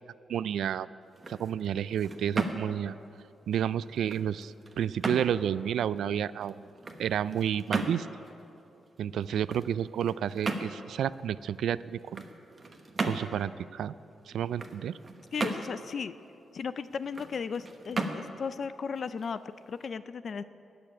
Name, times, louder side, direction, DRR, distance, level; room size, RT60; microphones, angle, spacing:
voice 1, 0.3-0.9 1.3-2.9 3.5-6.6 7.0-8.1 9.0-12.2 13.0-13.9 14.3-15.0, right 9 dB, 85° right, 17 dB, 0.3 m, -30 dB
sound 1, 1.0-19.9, right 3 dB, 30° right, 1.1 m, -38 dB
voice 2, 15.3-16.1 16.5-20.4, left 6 dB, 50° left, 14 dB, 0.4 m, -36 dB
17.0 x 7.0 x 9.8 m, 2.7 s
wide cardioid pair, 130°, 0 cm